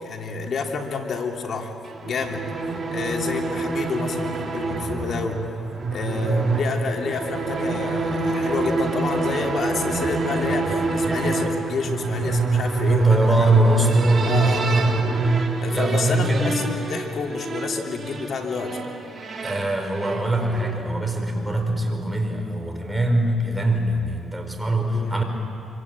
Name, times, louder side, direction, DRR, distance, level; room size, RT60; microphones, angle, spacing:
voice 1, 0.0-1.7 2.0-2.4 2.9-5.4 5.9-13.5 14.3-15.1 15.6-18.9 24.9-25.1, left 4 dB, 55° left, 2 dB, 3.2 m, -29 dB
sound 1, 1.8-20.9, right 3 dB, 40° right, 3.9 m, -26 dB
voice 2, 12.9-14.8 15.7-16.6 19.4-25.2, right 1 dB, 10° right, 3 dB, 4.9 m, -23 dB
25.0 x 24.5 x 8.9 m, 2.7 s
cardioid pair, 90°, 0 cm